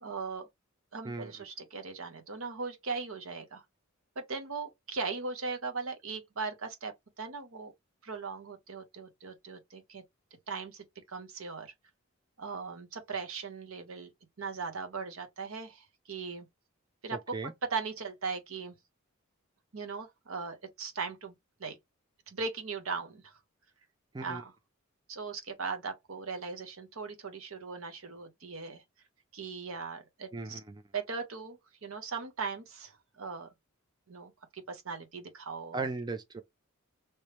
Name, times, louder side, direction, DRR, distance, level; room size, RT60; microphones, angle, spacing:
voice 1, 0.0-0.5 0.9-3.6 4.2-7.7 8.0-10.0 10.5-11.7 12.4-14.1 14.4-16.5 17.0-18.8 19.7-21.3 21.6-21.8 22.3-23.3 24.2-24.5 25.1-28.8 29.3-30.6 30.9-33.5 34.1-35.9, right 4 dB, 70° right, 0.9 m, -39 dB
voice 2, 30.3-30.8 35.7-36.4, right 3 dB, 20° right, 0.4 m, -37 dB
3.3 x 3.1 x 2.9 m
head